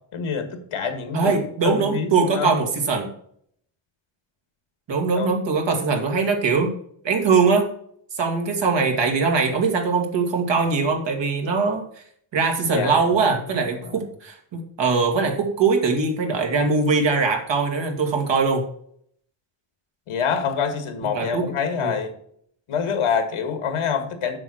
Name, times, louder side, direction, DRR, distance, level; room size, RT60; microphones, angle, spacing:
voice 1, 0.1-2.5 5.2-5.3 12.7-13.4 13.9-14.0 20.1-22.1 22.7-24.4, left 6 dB, 75° left, 7 dB, 1.8 m, -26 dB
voice 2, 1.1-3.1 4.9-6.7 7.0-7.7 8.1-11.8 12.3-18.6 21.1-21.5 21.8-22.0, right 4 dB, 60° right, 3 dB, 2.3 m, -21 dB
7.6 x 6.3 x 6.3 m, 0.64 s
cardioid pair, 110°, 50 cm